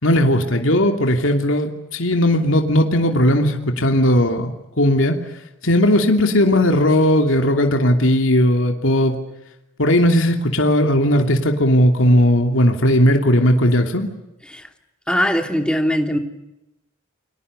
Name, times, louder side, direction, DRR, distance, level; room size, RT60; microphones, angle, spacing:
voice 1, 0.0-4.5 4.8-5.2 5.6-9.2 9.8-14.1, left 1 dB, 75° left, 4 dB, 2.9 m, -17 dB
voice 2, 15.1-16.2, equal, 5° left, 5 dB, 2.7 m, -20 dB
29.5 x 25.0 x 6.9 m, 0.93 s
head